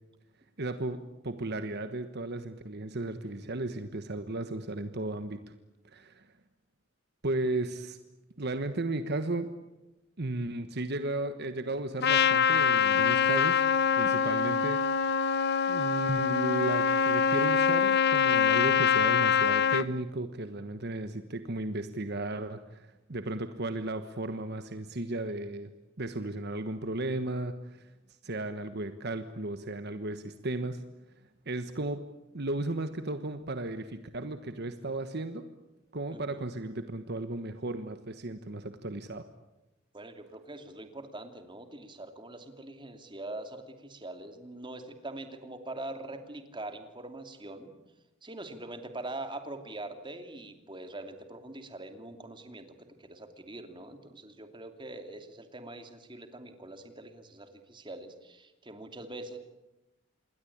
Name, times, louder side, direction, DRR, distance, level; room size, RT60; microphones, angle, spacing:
voice 1, 0.6-5.5 5.8-6.3 7.2-8.0 8.4-9.5 10.2-13.6 13.9-14.8 15.7-25.7 26.0-27.9 28.2-30.8 31.4-32.0 32.3-35.5 35.9-39.3, right 2 dB, 55° right, 9 dB, 1.3 m, -35 dB
Trumpet, 12.0-19.9, left 7 dB, 55° left, 0.9 m, -24 dB
voice 2, 36.1-36.5 39.9-47.7 48.2-52.7 53.0-59.4, right 2 dB, 25° right, 7 dB, 2.7 m, -43 dB
27.5 x 21.5 x 8.7 m, 1.0 s
head